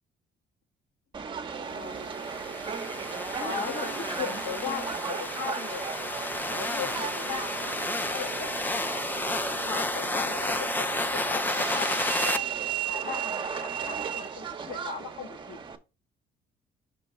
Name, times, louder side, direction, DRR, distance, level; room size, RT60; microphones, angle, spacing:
Subway metro underground, 1.1-15.8, right 6 dB, 30° right, 0.8 m, -35 dB
voice 1, 1.6-2.2 3.4-5.9 6.5-8.5 9.6-12.5 12.9-15.6, left 7 dB, 70° left, 4 dB, 1.7 m, -38 dB
sound 1, 1.9-12.4, left 2 dB, 10° left, 0.4 m, -32 dB
5.1 x 3.8 x 5.6 m, 0.30 s
cardioid pair, 110°, 17 cm